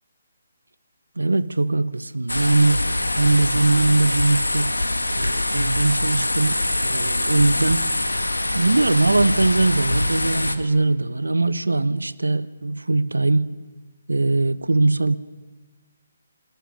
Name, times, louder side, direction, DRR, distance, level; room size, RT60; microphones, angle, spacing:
voice 1, 1.2-2.9 3.1-4.9 5.2-7.8 8.5-13.5 14.1-15.2, right 2 dB, 80° right, 0.9 m, -21 dB
sound 1, 2.3-10.6, left 1 dB, 85° left, 1.6 m, -24 dB
24.0 x 19.5 x 6.4 m
figure-of-eight pair, 145°, 0 cm